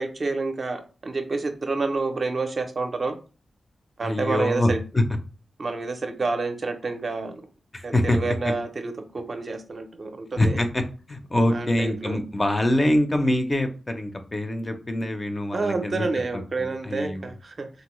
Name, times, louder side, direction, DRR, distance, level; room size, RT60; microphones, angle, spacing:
voice 1, 0.0-3.1 4.0-4.8 5.6-7.5 7.8-10.6 11.5-12.2 15.5-17.7, right 3 dB, 45° right, 6 dB, 0.4 m, -29 dB
voice 2, 4.0-5.0 7.7-8.5 10.4-10.8 11.1-16.1 16.6-17.3, left 1 dB, 25° left, 6 dB, 0.4 m, -24 dB
3.7 x 2.0 x 3.0 m, 0.35 s
wide cardioid pair, 125°, 0 cm